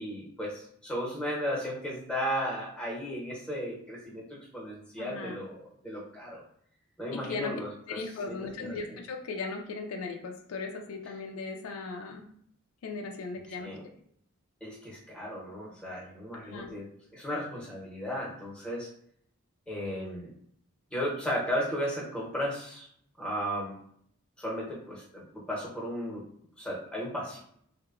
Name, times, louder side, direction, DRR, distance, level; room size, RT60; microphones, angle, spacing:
voice 1, 0.0-6.4 7.0-9.0 13.6-13.8 14.6-18.9 19.7-20.3 20.9-22.9 23.2-23.8 24.4-26.2 26.6-27.4, equal, 5° left, -5 dB, 0.7 m, -35 dB
voice 2, 5.0-5.4 7.1-7.5 7.9-12.2 12.8-13.7 16.4-16.7, left 4 dB, 80° left, 3 dB, 0.4 m, -37 dB
2.8 x 2.1 x 2.3 m, 0.66 s
head